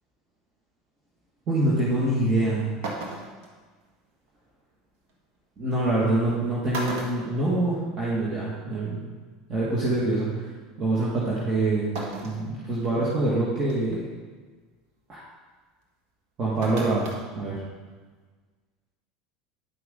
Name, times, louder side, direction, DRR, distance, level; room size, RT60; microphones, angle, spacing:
voice 1, 1.5-2.7 5.6-9.0 9.5-10.5 10.8-11.9 12.2-14.0 15.1-15.2 16.4-17.1 17.4-17.6, right 2 dB, 35° right, -7 dB, 2.0 m, -25 dB
sound 1, 2.3-2.4 2.8-3.5 5.1-5.2 6.2-6.3 6.7-8.1 8.4-8.5 9.8-9.9 12.0-12.5 13.0-13.1 13.7-14.0 16.6-17.2 17.6-17.7, right 2 dB, 65° right, 1.6 m, -35 dB
10.0 x 5.9 x 3.9 m, 1.4 s
hypercardioid pair, 85°, 0 cm